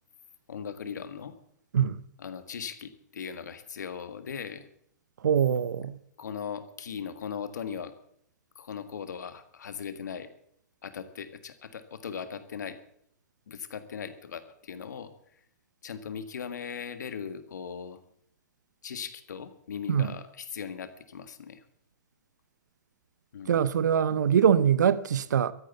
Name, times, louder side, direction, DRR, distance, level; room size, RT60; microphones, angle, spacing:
voice 1, 0.5-1.4 2.2-4.7 6.2-7.9 8.6-10.3 10.8-12.8 13.5-15.1 15.8-18.0 18.8-21.6 23.3-23.7, left 7 dB, 75° left, 1.7 m, -39 dB
voice 2, 5.2-6.0 19.9-20.1 23.5-25.5, right 8 dB, 80° right, 0.7 m, -23 dB
13.5 x 9.0 x 8.0 m
hypercardioid pair, 135°, 10 cm